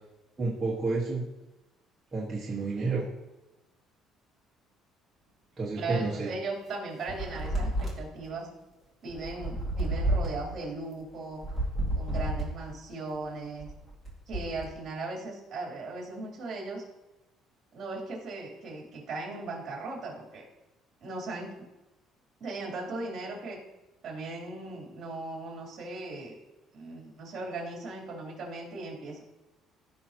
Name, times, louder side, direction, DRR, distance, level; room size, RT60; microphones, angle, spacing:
voice 1, 0.4-1.2 2.1-3.1 5.6-6.3, right 3 dB, 15° right, -7 dB, 1.5 m, -30 dB
voice 2, 5.7-8.5 9.0-11.4 11.9-13.7 14.3-16.8 17.7-20.4 21.0-21.6 22.4-23.6 24.0-26.4 26.7-29.2, right 3 dB, 35° right, -2 dB, 3.3 m, -38 dB
sound 1, 7.1-8.2 9.1-10.5 11.3-12.7 13.4-14.7, right 1 dB, 20° left, 2.2 m, -30 dB
15.0 x 5.8 x 2.9 m, 0.99 s
cardioid pair, 165°, 0 cm